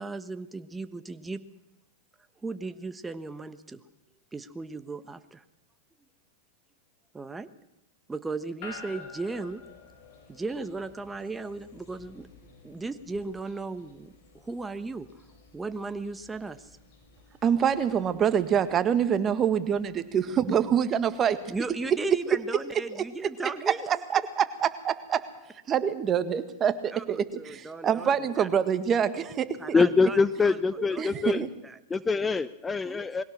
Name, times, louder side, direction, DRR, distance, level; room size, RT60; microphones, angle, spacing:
voice 1, 0.0-1.4 2.4-3.8 4.3-5.4 7.1-7.5 8.1-9.6 10.3-12.3 12.6-15.1 15.5-16.8 21.5-24.0 26.9-28.5 29.6-31.8 32.8-33.1, right 3 dB, 10° right, 11 dB, 1.2 m, -36 dB
sound 1, 8.6-22.9, left 4 dB, 60° left, 7.5 m, -52 dB
voice 2, 17.4-21.4 23.9-25.2 25.7-29.5 30.8-31.5, right 8 dB, 30° right, 11 dB, 1.7 m, -26 dB
voice 3, 29.7-31.4 31.9-33.2, left 4 dB, 15° left, 15 dB, 0.7 m, -24 dB
21.5 x 17.0 x 7.3 m, 0.90 s
hypercardioid pair, 110°, 0 cm